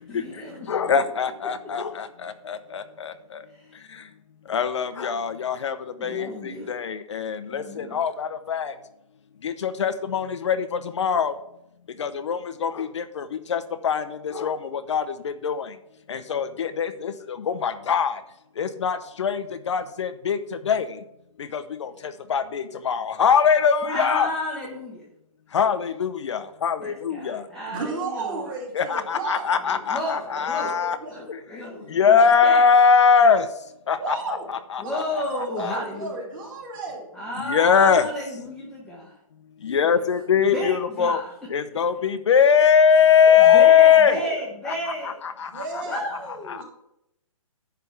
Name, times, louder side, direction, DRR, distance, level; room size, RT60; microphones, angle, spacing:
voice 1, 0.1-0.9 6.0-6.7 7.5-8.0 23.8-25.1 26.8-28.5 29.7-30.7 31.1-32.6 34.8-36.1 37.1-39.1 40.5-41.3 43.5-45.1 45.8-46.6, equal, 5° left, -5 dB, 0.8 m, -32 dB
voice 2, 0.7-2.1 2.5-3.1 4.5-5.7 6.0-6.3 6.7-8.7 9.4-10.6 11.0-11.3 12.0-13.2 13.5-14.0 14.4-14.6 14.9-15.6 16.1-17.1 17.5-18.1 18.6-20.4 20.7-20.9 21.5-21.9 22.3-24.3 25.5-27.4 28.7-31.0 31.9-33.4 33.9-35.0 35.4-35.8 37.5-38.1 39.6-41.2 41.5-44.2 46.5-46.6, left 7 dB, 55° left, 11 dB, 0.6 m, -21 dB
voice 3, 27.7-29.5 30.0-31.1 32.2-32.3 34.0-34.5 34.8-35.1 35.5-37.1 39.6-39.8 43.3-44.3 45.5-46.0, right 4 dB, 35° right, -3 dB, 3.1 m, -33 dB
10.5 x 3.5 x 7.1 m, 0.81 s
hypercardioid pair, 160°, 18 cm